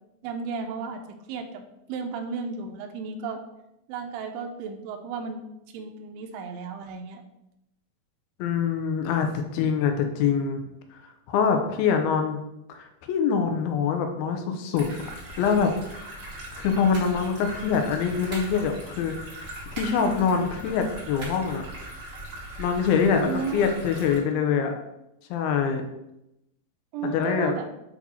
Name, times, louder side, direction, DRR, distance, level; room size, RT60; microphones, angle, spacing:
voice 1, 0.2-1.0 1.3-1.6 1.9-3.4 3.9-5.4 5.7-7.2 23.2-23.6 26.9-27.7, right 5 dB, 80° right, 4 dB, 2.3 m, -33 dB
voice 2, 8.4-10.6 10.9-11.0 11.3-12.4 12.7-14.9 15.4-15.7 16.6-21.6 22.6-24.8 25.3-25.8 27.0-27.5, left 6 dB, 85° left, 5 dB, 2.5 m, -24 dB
sound 1, 14.7-24.2, right 1 dB, 35° right, 1.7 m, -40 dB
sound 2, 16.4-22.4, right 3 dB, 55° right, 3.2 m, -46 dB
8.4 x 2.8 x 4.2 m, 0.86 s
omnidirectional pair, 4.2 m